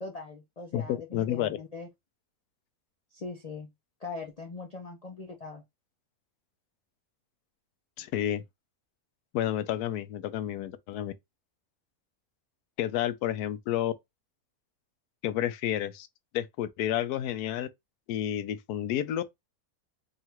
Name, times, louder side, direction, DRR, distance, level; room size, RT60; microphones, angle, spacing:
voice 1, 0.0-1.9 3.1-3.7 4.0-5.6, left 4 dB, 60° left, 0.4 m, -41 dB
voice 2, 0.7-1.6 8.0-8.4 9.3-11.1 12.8-13.9 15.2-16.1 16.3-17.7 18.1-19.2, left 11 dB, 85° left, 1.1 m, -30 dB
3.7 x 2.4 x 4.4 m
omnidirectional pair, 1.6 m